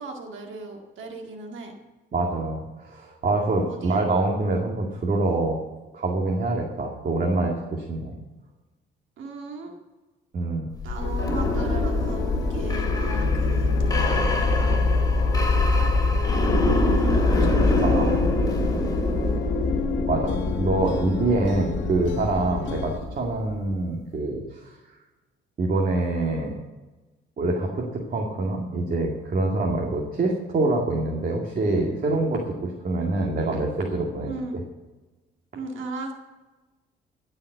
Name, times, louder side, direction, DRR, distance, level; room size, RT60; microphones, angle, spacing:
voice 1, 0.0-1.7 3.7-4.0 9.2-9.7 10.8-14.9 16.7-18.3 22.6-22.9 34.3-34.6 35.5-36.1, right 3 dB, 75° right, 2 dB, 2.0 m, -36 dB
voice 2, 2.1-5.6 5.9-8.1 10.3-10.7 15.5-15.9 17.8-18.2 20.1-24.8 25.6-26.5 27.4-34.3, right 2 dB, 45° right, 0 dB, 2.2 m, -25 dB
sound 1, 10.8-23.6, left 2 dB, 20° left, 2.8 m, -23 dB
sound 2, 11.0-23.0, left 8 dB, 70° left, 0.9 m, -33 dB
16.0 x 5.7 x 8.0 m, 1.2 s
cardioid pair, 90°, 20 cm